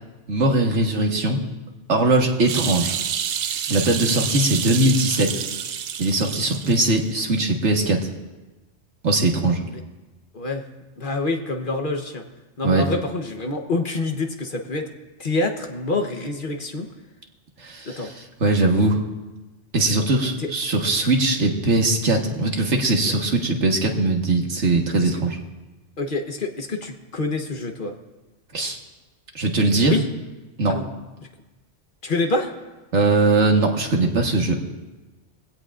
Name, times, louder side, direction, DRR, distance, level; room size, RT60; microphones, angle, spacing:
voice 1, 0.3-1.4 1.9-3.0 3.7-5.4 6.0-8.0 9.0-9.6 12.6-12.9 17.6-19.0 19.7-25.4 28.5-28.8 29.4-29.9 30.6-30.8 32.9-34.6, right 2 dB, 80° right, 2 dB, 1.7 m, -20 dB
sound 1, 2.5-7.0 7.4-7.5, right 8 dB, 65° right, 0.8 m, -28 dB
voice 2, 10.3-10.7 11.0-12.2 12.6-14.9 15.2-16.9 17.8-18.1 20.4-20.5 25.0-25.1 26.0-27.9 29.8-30.0 30.7-30.9 32.0-32.5, left 3 dB, 50° left, 5 dB, 1.2 m, -26 dB
21.0 x 16.0 x 2.5 m, 1.1 s
omnidirectional pair, 1.2 m